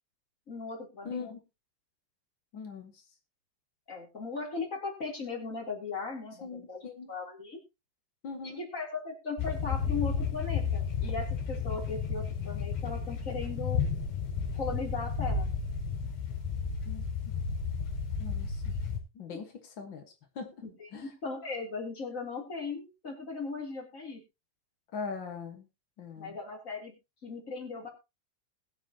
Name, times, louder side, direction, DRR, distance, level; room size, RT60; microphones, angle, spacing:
voice 1, 0.5-1.2 3.9-6.8 7.1-7.6 8.4-13.8 14.5-15.5 20.6-24.2 26.2-26.9 27.2-27.9, left 4 dB, 20° left, 0 dB, 3.2 m, -38 dB
voice 2, 1.0-1.4 2.5-3.0 6.4-7.1 8.2-8.6 16.8-17.3 18.2-18.7 19.1-20.1 20.3-20.6 20.9-21.1 24.9-25.7 26.0-26.4, left 5 dB, 80° left, 4 dB, 1.0 m, -41 dB
sound 1, 9.4-19.0, left 6 dB, 65° left, 4.3 m, -32 dB
21.0 x 7.2 x 2.9 m, 0.25 s
omnidirectional pair, 4.7 m